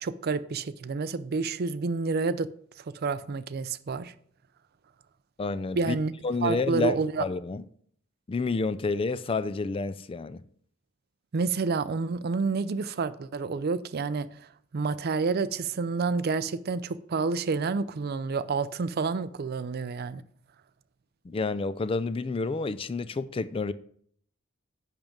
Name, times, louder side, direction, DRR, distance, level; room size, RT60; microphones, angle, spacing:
voice 1, 0.0-2.5 2.8-4.1 5.8-6.1 6.4-7.2 11.3-14.5 14.7-20.2, right 4 dB, 50° right, 0.5 m, -29 dB
voice 2, 5.4-6.0 6.2-7.6 8.3-10.4 21.2-23.7, left 3 dB, 25° left, 0.4 m, -29 dB
10.5 x 3.6 x 7.3 m
head